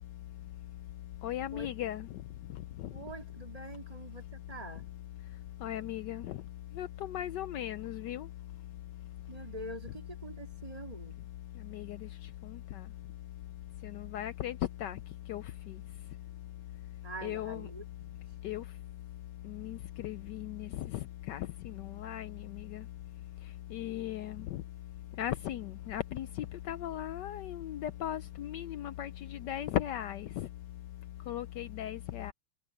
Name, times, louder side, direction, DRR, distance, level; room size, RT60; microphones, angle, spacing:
voice 1, 1.2-2.1 5.6-6.4 6.8-8.3 11.7-12.0 13.8-15.0 15.3-15.4 17.2-17.7 18.4-18.6 19.5-20.9 21.3-22.3 22.7-22.8 23.7-24.6 25.2-26.3 26.7-30.5 31.3-32.3, left 12 dB, 75° left, 1.0 m, -37 dB
voice 2, 2.9-4.8 9.3-11.2 17.0-18.2, right 2 dB, 15° right, 2.2 m, -45 dB
omnidirectional pair, 2.4 m